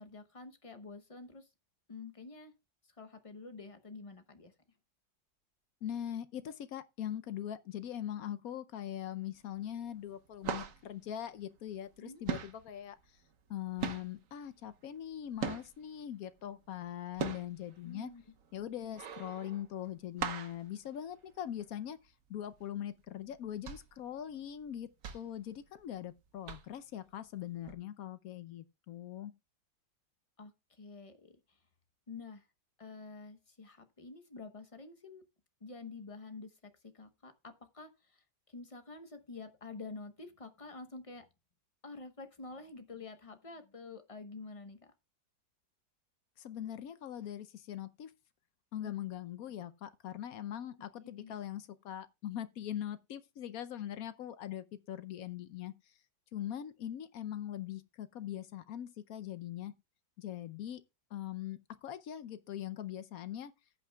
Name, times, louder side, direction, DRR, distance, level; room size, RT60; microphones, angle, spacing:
voice 1, 0.0-1.5 1.9-2.5 3.0-4.5 12.0-12.2 17.8-18.2 30.4-31.6 32.1-32.4 32.8-35.2 35.6-38.2 38.5-41.3 41.8-44.9 48.8-48.9 51.0-51.3, left 3 dB, 35° left, 0.5 m, -48 dB
voice 2, 5.8-13.0 13.5-18.1 18.5-22.0 22.3-24.9 25.1-29.3 46.4-48.1 48.7-55.7 56.3-59.8 60.2-60.8 61.1-63.5, left 11 dB, 70° left, 0.9 m, -41 dB
sound 1, 9.3-9.8 10.1-12.0 12.2-16.0 16.4-21.7 22.1-22.2 22.5-22.8 23.3-26.1 26.5-27.0 27.6-27.7, right 7 dB, 50° right, 1.2 m, -40 dB
14.5 x 8.3 x 2.3 m
omnidirectional pair, 2.1 m